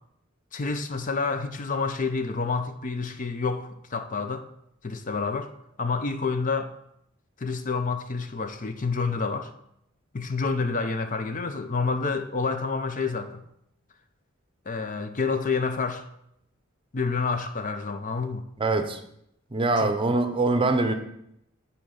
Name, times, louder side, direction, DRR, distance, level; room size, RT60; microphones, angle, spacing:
voice 1, 0.5-4.4 4.8-5.5 5.8-6.7 7.4-9.5 10.1-13.4 14.7-16.0 16.9-18.5 19.8-20.0, left 4 dB, 40° left, 0.6 m, -28 dB
voice 2, 18.6-19.0 19.5-20.9, right 2 dB, 25° right, 0.7 m, -23 dB
9.0 x 4.5 x 6.4 m
head